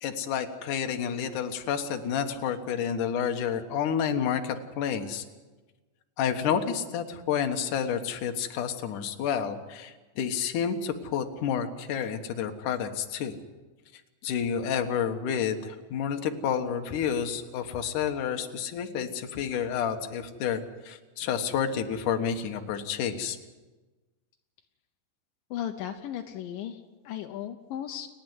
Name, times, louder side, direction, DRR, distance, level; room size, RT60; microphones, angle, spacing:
voice 1, 0.0-5.2 6.2-13.4 14.2-23.4, left 8 dB, 60° left, 5 dB, 2.3 m, -30 dB
voice 2, 25.5-28.1, left 10 dB, 75° left, 5 dB, 2.0 m, -36 dB
30.0 x 10.5 x 9.6 m, 1.2 s
omnidirectional pair, 5.1 m